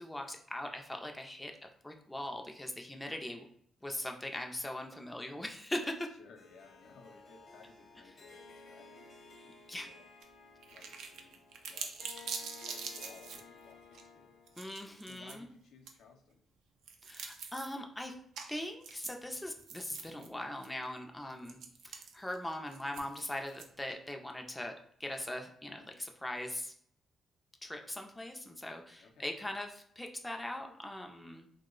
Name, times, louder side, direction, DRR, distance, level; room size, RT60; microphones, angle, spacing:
voice 1, 0.0-1.5 1.8-3.5 3.8-6.1 9.7-9.9 14.6-15.5 17.0-18.2 18.5-21.6 21.8-24.7 25.0-26.7 27.6-31.5, left 1 dB, 10° left, 3 dB, 0.3 m, -40 dB
voice 2, 6.2-10.1 10.6-12.1 12.7-14.4 15.0-16.4 21.4-21.6 29.0-29.3, left 4 dB, 80° left, 3 dB, 0.5 m, -59 dB
Harp, 6.4-14.8, left 3 dB, 45° left, 0.7 m, -55 dB
sound 1, 10.2-10.3 10.6-13.4 13.9-14.0 14.5-15.3 15.9-16.0 16.8-17.8 18.4-18.5 18.8-20.3 20.6-20.7 21.4-23.9, right 6 dB, 85° right, 0.4 m, -44 dB
2.9 x 2.0 x 3.6 m, 0.65 s
cardioid pair, 115°, 0 cm